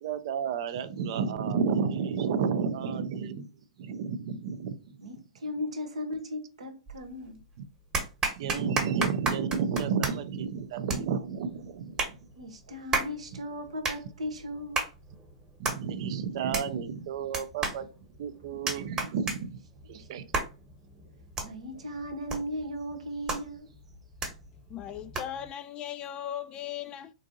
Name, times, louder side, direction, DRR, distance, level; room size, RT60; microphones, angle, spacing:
voice 1, 0.0-3.5 3.8-5.0 8.3-12.2 15.6-17.9 18.2-19.6 19.9-20.3, right 6 dB, 55° right, 0.4 m, -31 dB
voice 2, 5.0-7.4 12.4-14.8 19.9-20.3 21.4-23.7, left 1 dB, 75° right, 0.8 m, -37 dB
sound 1, 6.9-7.4 7.9-25.5, right 3 dB, 20° right, 1.0 m, -35 dB
voice 3, 24.7-27.1, left 10 dB, 25° left, 0.3 m, -38 dB
3.8 x 2.6 x 2.6 m
figure-of-eight pair, 110°, 3 cm